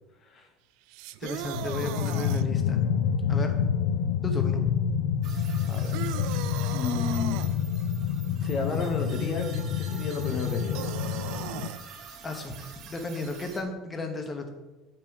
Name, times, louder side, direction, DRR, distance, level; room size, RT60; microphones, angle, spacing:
sound 1, 0.9-2.4 5.9-7.5 10.7-11.8, right 13 dB, 75° right, 0.4 m, -37 dB
voice 1, 1.2-2.8 3.3-3.6 4.2-4.6 12.2-12.5 12.8-14.5, left 2 dB, 20° left, 4 dB, 1.2 m, -34 dB
sound 2, 1.5-11.7, left 8 dB, 90° left, 0.5 m, -28 dB
sound 3, 5.2-13.6, right 6 dB, 50° right, 1.3 m, -46 dB
voice 2, 5.7-6.4 6.7-7.4 8.4-10.9, left 4 dB, 40° left, 3 dB, 1.0 m, -33 dB
8.4 x 6.0 x 4.8 m, 1.1 s
cardioid pair, 135°, 0 cm